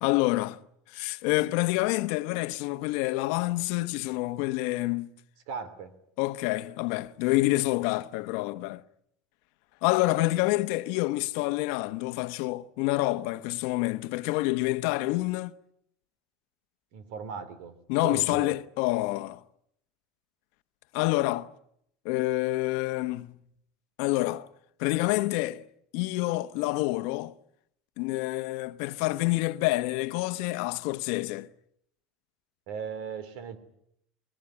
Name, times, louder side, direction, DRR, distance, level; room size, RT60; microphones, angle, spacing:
voice 1, 0.0-0.6 0.9-5.1 6.2-8.8 9.8-15.5 17.9-19.4 20.9-21.5 22.0-23.3 24.0-24.5 24.8-25.7 25.9-27.3 28.0-31.5, left 19 dB, 70° left, 1.0 m, -27 dB
voice 2, 5.5-5.9 16.9-17.7 18.0-18.5 32.7-33.6, right 6 dB, 75° right, 3.4 m, -37 dB
23.0 x 20.5 x 9.8 m
supercardioid pair, 130°, 0 cm